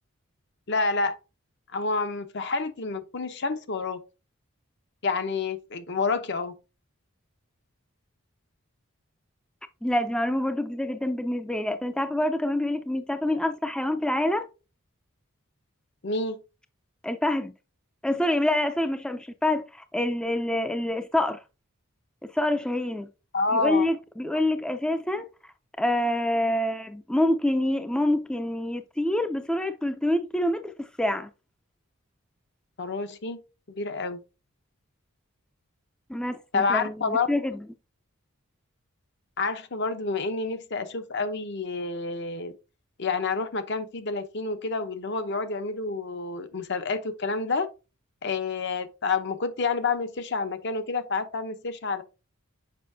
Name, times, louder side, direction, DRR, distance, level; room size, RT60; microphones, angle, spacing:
voice 1, 0.7-1.1 1.7-4.0 5.0-6.5 16.0-16.4 23.3-23.9 32.8-33.4 33.7-34.2 36.5-37.3 39.4-42.5 43.0-47.7 48.2-52.0, left 4 dB, 55° left, 0.7 m, -28 dB
voice 2, 9.8-14.5 17.0-17.5 18.0-21.4 22.3-23.1 23.5-25.3 25.8-31.3 36.1-37.7, left 1 dB, 5° left, 0.4 m, -26 dB
6.8 x 5.4 x 2.7 m
head